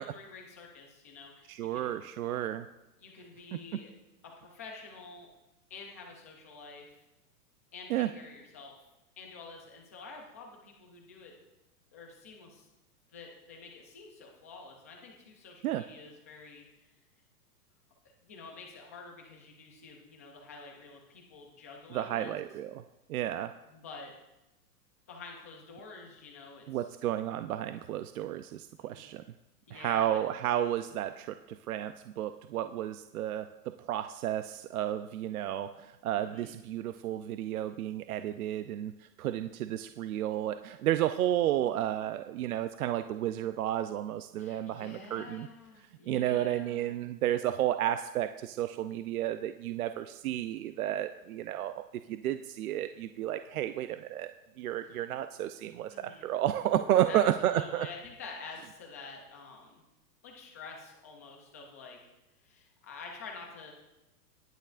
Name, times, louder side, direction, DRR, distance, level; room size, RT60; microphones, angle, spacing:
voice 1, 0.0-1.9 3.0-3.9 4.2-5.3 5.7-7.0 7.7-8.8 9.2-11.3 11.9-12.7 13.1-16.9 18.2-22.4 23.7-24.1 25.1-26.9 28.8-29.1 29.7-30.2 36.2-36.6 44.4-46.9 55.9-56.3 57.1-59.8 60.2-62.0 62.4-63.7, left 4 dB, 10° left, 0 dB, 0.4 m, -48 dB
voice 2, 1.5-2.7 7.9-8.1 15.6-15.8 21.9-22.8 23.1-23.5 26.7-29.2 29.7-33.5 33.8-45.5 46.1-51.8 52.1-54.3 54.6-57.9, right 12 dB, 65° right, 10 dB, 0.6 m, -32 dB
19.0 x 9.2 x 2.4 m, 0.96 s
hypercardioid pair, 160°, 48 cm